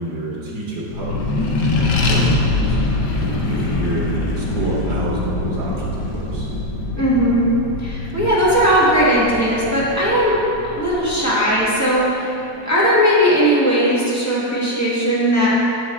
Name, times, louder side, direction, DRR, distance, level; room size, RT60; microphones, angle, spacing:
voice 1, 0.0-6.5, right 1 dB, 80° right, -7 dB, 1.8 m, -29 dB
Accelerating revving vroom, 0.9-11.8, left 2 dB, 70° left, 1.2 m, -23 dB
voice 2, 7.0-7.5 7.8-10.4 10.6-12.4 12.6-15.5, equal, 10° left, -9 dB, 1.2 m, -17 dB
7.1 x 4.7 x 4.3 m, 2.8 s
omnidirectional pair, 2.0 m